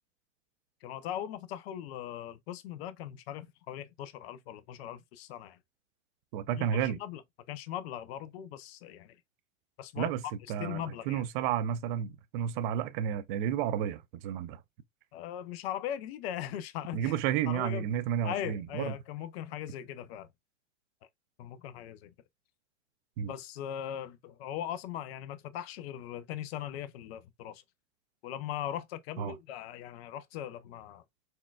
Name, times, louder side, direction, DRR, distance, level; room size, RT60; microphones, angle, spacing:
voice 1, 0.8-5.6 6.6-7.2 7.5-9.2 9.8-10.1 10.6-11.5 15.1-17.2 17.5-17.8 18.2-20.3 21.4-22.1 23.2-27.6 28.2-31.0, left 11 dB, 50° left, 0.5 m, -39 dB
voice 2, 6.3-7.0 10.0-10.2 10.5-14.6 16.9-18.9 23.2-23.3 29.2-29.3, right 9 dB, 40° right, 0.4 m, -31 dB
4.3 x 2.2 x 2.2 m
hypercardioid pair, 120°, 40 cm